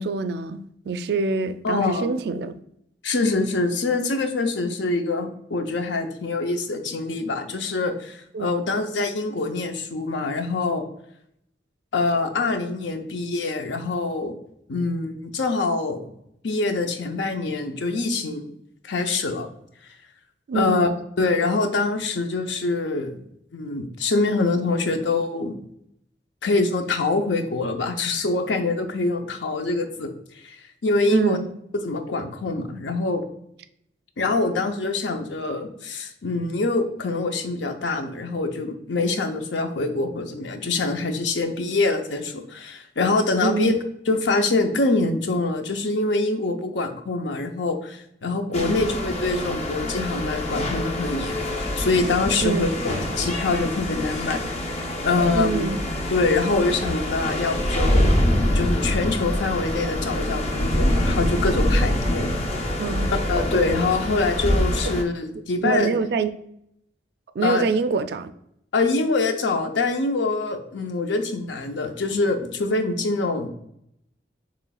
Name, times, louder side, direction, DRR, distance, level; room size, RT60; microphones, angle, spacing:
voice 1, 0.0-2.5 8.3-8.5 20.5-20.9 31.1-31.5 43.4-43.8 48.6-48.8 52.4-52.7 55.3-55.8 62.8-63.1 65.6-66.3 67.4-68.3, right 4 dB, 60° right, 0.3 m, -25 dB
voice 2, 1.6-2.1 3.0-10.8 11.9-14.3 14.7-16.1 16.4-18.5 18.8-19.5 19.8-20.0 20.5-20.9 21.2-23.2 23.5-25.5 26.4-30.1 30.4-31.4 31.7-33.2 34.2-43.7 44.1-55.6 56.1-58.2 58.5-62.3 63.3-65.9 67.4-67.6 68.7-73.5, left 3 dB, 80° left, 0.7 m, -25 dB
sound 1, 48.5-65.0, left 1 dB, 35° left, 0.6 m, -25 dB
6.9 x 3.1 x 2.3 m
head